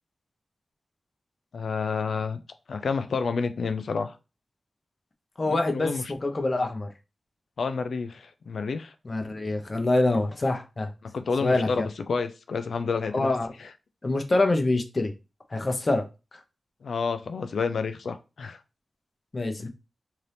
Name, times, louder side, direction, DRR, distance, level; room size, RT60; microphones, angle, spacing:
voice 1, 1.5-2.4 2.7-4.2 5.4-6.1 7.6-8.9 11.0-13.3 16.8-18.6 19.6-19.7, left 5 dB, 80° left, 0.4 m, -29 dB
voice 2, 5.4-6.9 9.0-10.9 11.4-11.9 13.1-13.5 14.0-15.1 15.5-16.0 16.3-16.4 19.3-19.7, left 2 dB, 45° left, 0.7 m, -25 dB
2.7 x 2.5 x 3.3 m
cardioid pair, 50°, 0 cm